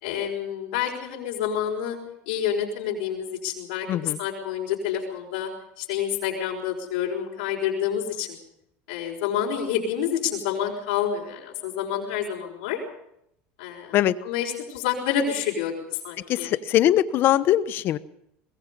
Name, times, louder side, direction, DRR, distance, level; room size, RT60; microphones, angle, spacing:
voice 1, 0.0-2.0 2.2-5.5 5.8-8.4 8.9-12.8 13.6-15.7 16.0-16.5, left 9 dB, 85° left, -2 dB, 5.1 m, -28 dB
voice 2, 16.3-18.0, left 12 dB, 45° left, 15 dB, 1.0 m, -21 dB
23.5 x 21.5 x 5.4 m, 0.76 s
supercardioid pair, 135°, 5 cm